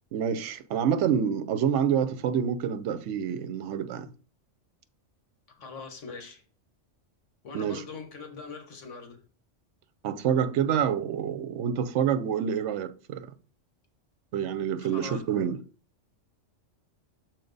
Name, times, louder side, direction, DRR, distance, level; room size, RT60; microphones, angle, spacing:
voice 1, 0.1-4.1 7.5-7.8 10.0-13.2 14.3-15.6, right 8 dB, 75° right, 1.0 m, -27 dB
voice 2, 5.6-6.4 7.4-9.2 14.8-15.2, left 4 dB, 80° left, 1.5 m, -42 dB
6.5 x 4.4 x 3.9 m
omnidirectional pair, 1.2 m